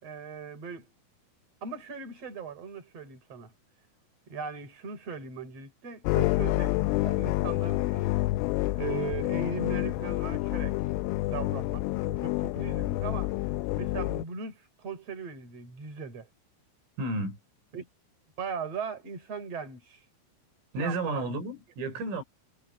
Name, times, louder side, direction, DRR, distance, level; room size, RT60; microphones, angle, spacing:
voice 1, 0.0-0.9 1.6-3.5 4.3-8.1 8.7-10.8 11.3-13.3 13.8-16.3 17.7-17.9 18.4-20.0 20.8-21.3, right 6 dB, 30° right, 6.2 m, -39 dB
sound 1, 6.0-14.2, left 18 dB, 85° left, 3.2 m, -28 dB
voice 2, 17.0-17.4 20.7-22.2, right 2 dB, 75° right, 8.0 m, -32 dB
omnidirectional pair, 5.9 m